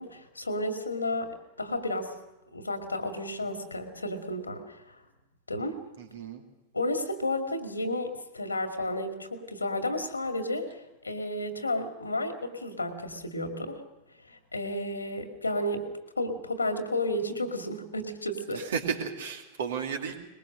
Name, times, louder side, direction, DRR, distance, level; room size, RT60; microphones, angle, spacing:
voice 1, 0.0-2.1 2.5-5.0 5.5-5.8 6.7-13.8 14.3-15.9 16.2-18.6, left 1 dB, 80° left, 6 dB, 2.2 m, -32 dB
voice 2, 6.0-6.4 18.5-20.2, right 6 dB, 60° right, 4 dB, 2.6 m, -33 dB
22.5 x 21.0 x 6.5 m, 0.98 s
figure-of-eight pair, 90°, 0 cm